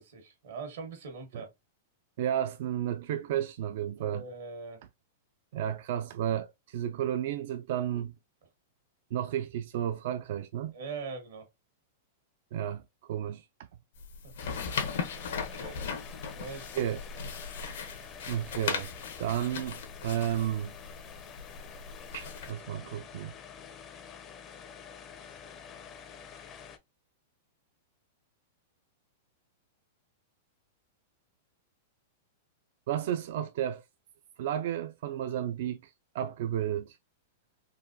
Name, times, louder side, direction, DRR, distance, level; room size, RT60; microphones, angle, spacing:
voice 1, 0.0-1.5 4.0-4.8 10.7-11.5 14.2-14.3 15.3-15.8 16.1-16.7 17.1-17.2, right 4 dB, 80° right, 1.4 m, -42 dB
voice 2, 2.2-4.2 5.5-8.1 9.1-10.7 12.5-13.4 16.8-17.0 18.3-18.9 19.2-20.7 22.1-23.3 32.9-33.8 34.4-37.0, right 10 dB, 60° right, 0.3 m, -32 dB
sound 1, 14.0-22.5, left 6 dB, 80° left, 0.9 m, -38 dB
sound 2, 14.4-26.8, left 7 dB, 30° left, 0.5 m, -48 dB
3.9 x 2.3 x 2.6 m
hypercardioid pair, 140°, 0 cm